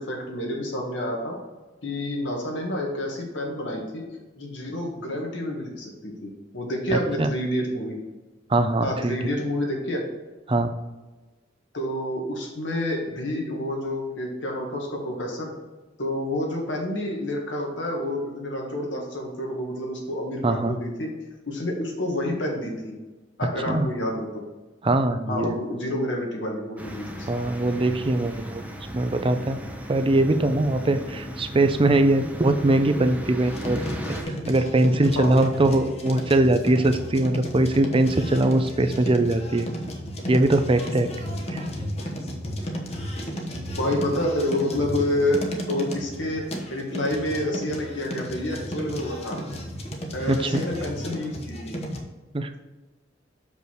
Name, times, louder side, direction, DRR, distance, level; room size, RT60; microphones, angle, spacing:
voice 1, 0.0-1.4 1.8-4.0 4.4-8.0 8.8-10.0 11.7-15.5 16.0-21.1 21.5-22.9 23.4-24.4 25.3-27.3 35.2-35.4 43.8-45.4 45.7-46.4 46.7-49.4 50.1-51.8, left 1 dB, 65° left, 0 dB, 1.8 m, -28 dB
voice 2, 6.9-7.3 8.5-9.2 10.5-10.7 20.4-20.8 23.7-23.9 24.8-25.6 27.3-28.6 28.9-29.6 29.9-33.8 34.3-39.7 40.3-41.1 41.5-41.6 50.3-50.6 52.3-52.5, right 2 dB, 30° right, 8 dB, 0.5 m, -21 dB
sound 1, 26.8-34.2, equal, 10° right, 0.9 m, -36 dB
sound 2, 33.5-52.0, equal, 35° left, 1.1 m, -34 dB
6.7 x 5.4 x 4.6 m, 1.2 s
head